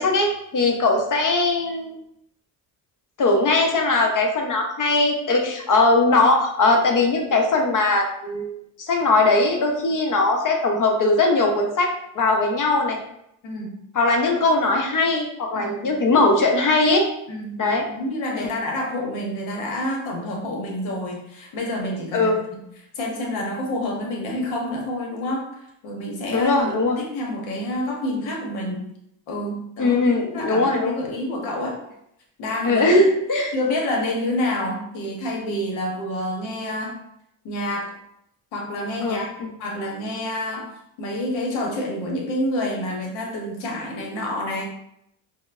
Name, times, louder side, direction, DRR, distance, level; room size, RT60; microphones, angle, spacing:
voice 1, 0.0-2.0 3.2-13.0 13.9-17.1 17.6-17.9 18.4-18.5 22.1-22.3 26.3-27.0 29.8-31.0 32.6-33.5 39.0-39.5, left 2 dB, 40° left, 1 dB, 0.8 m, -20 dB
voice 2, 13.4-13.7 15.5-16.0 17.3-22.6 23.0-25.5 25.8-28.9 29.3-30.0 30.3-31.7 32.4-33.1 33.5-37.0 37.4-37.9 38.5-39.3 39.6-40.7 41.0-44.6, left 1 dB, 75° left, -1 dB, 1.0 m, -28 dB
4.3 x 2.1 x 2.4 m, 0.78 s
supercardioid pair, 60°, 47 cm